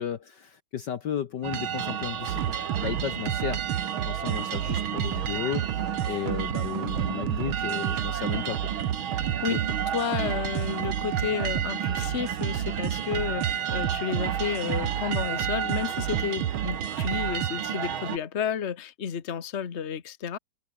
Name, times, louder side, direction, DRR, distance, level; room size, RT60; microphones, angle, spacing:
voice 1, 0.0-2.6 2.8-3.6 4.0-8.7 9.5-9.6, left 9 dB, 60° left, 1.5 m, -34 dB
sound 1, 1.4-18.2, right 9 dB, 70° right, 2.3 m, -32 dB
sound 2, 2.3-17.5, right 11 dB, 90° right, 2.2 m, -31 dB
voice 2, 9.2-9.5 9.9-20.4, left 7 dB, 35° left, 1.4 m, -32 dB
omnidirectional pair, 2.4 m